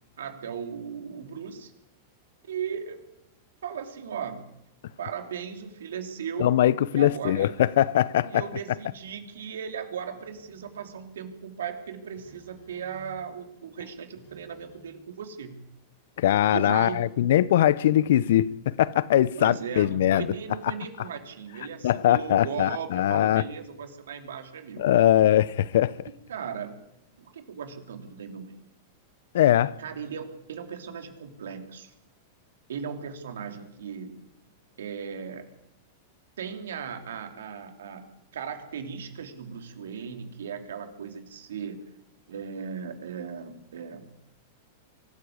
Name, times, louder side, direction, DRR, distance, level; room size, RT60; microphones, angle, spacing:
voice 1, 0.2-1.7 2.5-3.0 3.6-4.5 5.0-6.6 6.9-7.5 8.3-15.6 16.5-17.0 19.4-24.9 26.3-26.8 27.2-28.6 29.8-31.9 32.7-34.2 34.8-35.5 36.4-38.1 38.3-41.8 42.3-44.2, right 7 dB, 80° right, 3.1 m, -37 dB
voice 2, 6.4-8.5 16.2-20.3 21.8-23.4 24.8-26.1 29.3-29.7, left 12 dB, 70° left, 0.8 m, -21 dB
Telephone, 9.2-9.3 10.1-11.2 12.1-13.4 14.1-14.8, right 3 dB, 50° left, 4.5 m, -57 dB
23.5 x 13.5 x 8.7 m
hypercardioid pair, 105°, 0 cm